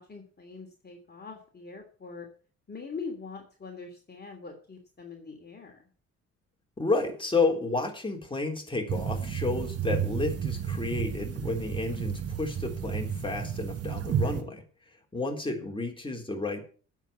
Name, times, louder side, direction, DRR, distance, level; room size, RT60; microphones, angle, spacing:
voice 1, 0.0-2.3 2.7-5.8 14.2-14.6, left 4 dB, 35° left, 3 dB, 3.0 m, -43 dB
voice 2, 6.8-14.6 15.1-16.6, left 3 dB, 15° left, 3 dB, 3.6 m, -31 dB
sound 1, 8.9-14.4, right 8 dB, 50° right, 1.3 m, -32 dB
9.1 x 7.8 x 8.3 m, 0.40 s
cardioid pair, 90°, 30 cm